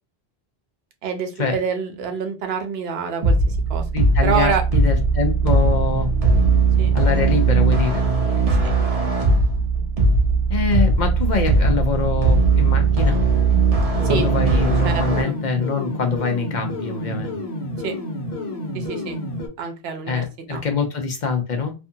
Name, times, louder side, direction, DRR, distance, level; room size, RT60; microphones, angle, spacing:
voice 1, 1.0-3.8 4.2-4.6 6.8-6.9 14.0-14.3 14.6-15.4 17.8-17.9 18.7-19.2 19.6-20.2 20.5-20.6, right 6 dB, 80° right, 5 dB, 0.8 m, -26 dB
sound 1, 3.2-15.2, right 3 dB, 40° right, 0.7 m, -18 dB
voice 2, 3.9-6.1 6.9-8.0 10.5-13.2 14.1-17.3 20.1-21.7, left 5 dB, 55° left, 4 dB, 0.6 m, -24 dB
sound 2, 13.9-19.5, left 1 dB, 90° left, 1.0 m, -30 dB
2.5 x 2.4 x 2.6 m, 0.30 s
omnidirectional pair, 1.0 m